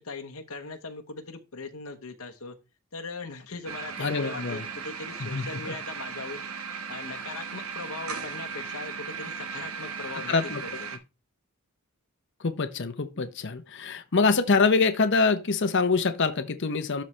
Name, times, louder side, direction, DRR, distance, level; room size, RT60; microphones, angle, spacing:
voice 1, 0.0-2.6 2.9-6.4 6.9-10.3 10.6-10.9, left 3 dB, 75° left, 1.0 m, -39 dB
sound 1, 3.7-11.0, right 5 dB, 70° right, 1.2 m, -37 dB
voice 2, 4.0-4.6 5.2-5.7 10.3-10.6 12.4-17.0, left 4 dB, 55° left, 0.7 m, -25 dB
12.5 x 4.2 x 3.2 m
head